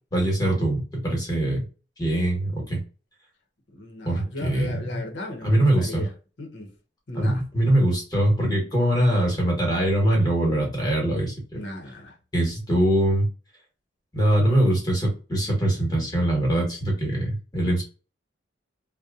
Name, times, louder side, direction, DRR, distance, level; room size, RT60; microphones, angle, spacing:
voice 1, 0.1-1.7 2.0-2.8 4.0-5.0 5.4-6.0 7.1-11.3 12.3-13.3 14.1-17.8, right 1 dB, 20° left, 1.1 m, -22 dB
voice 2, 3.7-6.1 6.4-6.7 7.1-7.4 11.5-12.2, left 1 dB, 70° left, 0.7 m, -36 dB
2.8 x 2.1 x 2.4 m
head